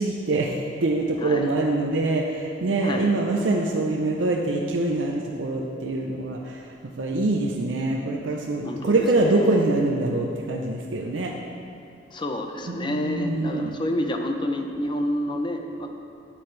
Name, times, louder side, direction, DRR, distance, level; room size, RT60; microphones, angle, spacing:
voice 1, 0.0-11.3 12.7-13.8, right 2 dB, 90° right, 0 dB, 0.6 m, -24 dB
voice 2, 1.2-1.5 2.8-3.1 8.6-9.5 12.1-15.9, left 1 dB, 25° left, 4 dB, 0.6 m, -29 dB
10.0 x 8.6 x 3.2 m, 2.5 s
head